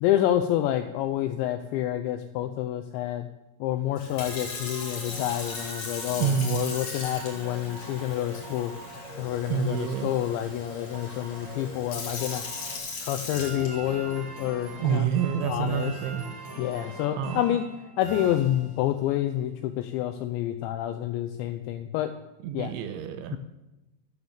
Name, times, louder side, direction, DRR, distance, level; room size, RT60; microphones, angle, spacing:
voice 1, 0.0-3.3 3.6-8.7 9.2-12.4 13.0-15.1 15.5-15.9 16.6-17.6 18.0-22.1 22.5-22.7 23.3-23.4, left 12 dB, 85° left, 8 dB, 2.6 m, -28 dB
Sink (filling or washing) / Fill (with liquid), 3.9-14.2 14.8-15.1, left 4 dB, 45° left, 3.1 m, -39 dB
sound 1, 4.2-12.8, right 1 dB, 30° right, 4.3 m, -43 dB
voice 2, 6.2-6.6 9.5-10.1 14.8-16.3 17.2-17.6 22.4-23.4, right 8 dB, 80° right, 9 dB, 3.0 m, -28 dB
sound 2, 13.3-19.0, right 1 dB, 60° right, 5.6 m, -41 dB
13.0 x 9.5 x 7.2 m, 0.99 s
omnidirectional pair, 5.8 m